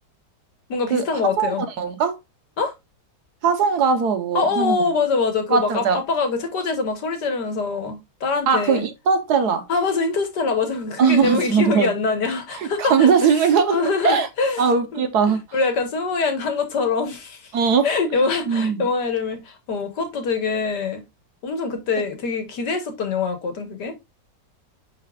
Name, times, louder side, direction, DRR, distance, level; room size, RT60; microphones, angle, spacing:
voice 1, 0.7-1.6 2.6-2.7 4.3-8.8 9.7-13.1 13.7-14.6 14.9-15.0 15.5-17.5 17.8-21.0 21.4-24.0, left 4 dB, 70° left, 2.1 m, -24 dB
voice 2, 1.4-2.2 3.4-4.8 5.5-6.0 8.5-9.7 11.0-11.9 12.5-14.3 14.6-15.4 17.5-17.9 18.5-18.9, right 6 dB, 65° right, 1.5 m, -20 dB
10.0 x 4.3 x 2.4 m
omnidirectional pair, 1.9 m